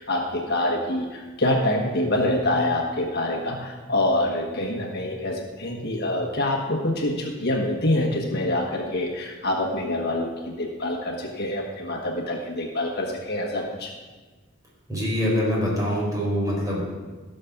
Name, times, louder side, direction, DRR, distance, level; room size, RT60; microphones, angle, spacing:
voice 1, 0.0-13.9, left 1 dB, 50° left, 1 dB, 1.4 m, -26 dB
voice 2, 14.9-16.9, equal, 15° right, -4 dB, 4.8 m, -24 dB
15.5 x 6.7 x 5.9 m, 1.3 s
head